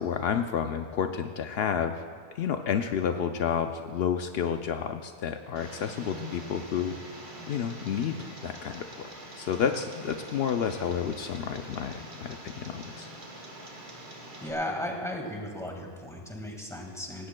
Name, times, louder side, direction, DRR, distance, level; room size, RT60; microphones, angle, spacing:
voice 1, 0.0-2.0 2.3-7.0 7.5-9.1 9.4-13.1, left 7 dB, 70° left, 7 dB, 0.8 m, -30 dB
Tick, 5.6-14.5, equal, 85° right, 2.0 m, -44 dB
voice 2, 14.4-17.3, left 1 dB, 5° left, 1 dB, 1.7 m, -35 dB
17.5 x 16.5 x 2.2 m, 2.1 s
omnidirectional pair, 1.1 m